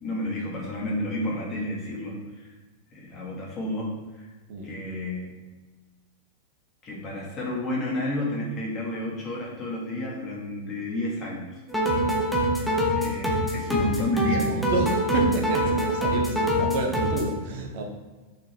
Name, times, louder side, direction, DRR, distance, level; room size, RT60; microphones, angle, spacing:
voice 1, 0.0-2.5 2.9-4.3 4.6-5.3 6.8-11.6 12.6-14.7, left 1 dB, 30° left, -3 dB, 2.6 m, -31 dB
sound 1, 11.7-17.3, equal, ahead, 1.8 m, -25 dB
voice 2, 14.4-17.8, right 2 dB, 50° right, 2 dB, 1.3 m, -30 dB
6.7 x 5.4 x 4.8 m, 1.3 s
figure-of-eight pair, 90°, 0 cm